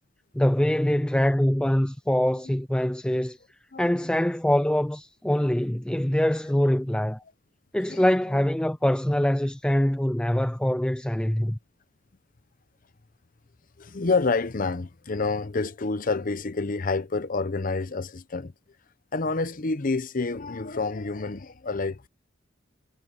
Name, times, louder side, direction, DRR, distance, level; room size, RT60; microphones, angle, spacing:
voice 1, 0.3-3.4 3.8-7.2 7.7-11.6, left 1 dB, 5° left, 0.4 m, -24 dB
voice 2, 13.8-18.5 19.1-22.1, left 3 dB, 45° left, 0.8 m, -28 dB
head